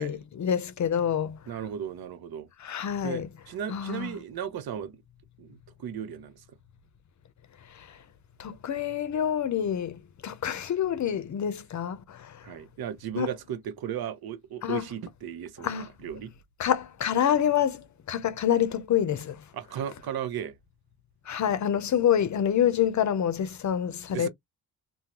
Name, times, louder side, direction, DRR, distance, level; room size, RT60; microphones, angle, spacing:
voice 1, 0.0-1.4 2.6-3.3 3.7-4.1 7.8-7.9 8.4-12.4 13.1-13.3 14.6-14.9 15.6-15.9 16.6-19.4 21.3-24.3, left 9 dB, 50° left, 0.6 m, -27 dB
voice 2, 1.5-5.0 5.4-6.4 12.4-16.3 19.5-20.5 24.1-24.3, right 9 dB, 75° right, 0.8 m, -36 dB
3.7 x 2.1 x 2.8 m
wide cardioid pair, 120°, 37 cm